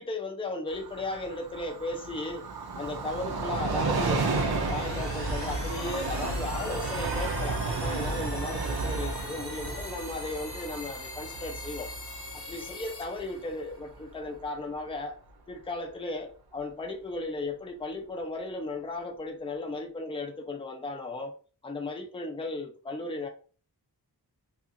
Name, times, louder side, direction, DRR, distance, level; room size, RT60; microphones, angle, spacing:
voice 1, 0.0-2.4 2.7-11.9 12.3-15.1 15.5-21.3 21.6-23.3, left 2 dB, 15° left, 0.5 m, -36 dB
Train, 0.7-14.0 14.3-14.4, right 3 dB, 65° right, 0.6 m, -33 dB
sound 1, 4.1-13.8, left 2 dB, 35° left, 0.8 m, -42 dB
2.8 x 2.5 x 2.5 m
wide cardioid pair, 60°, 41 cm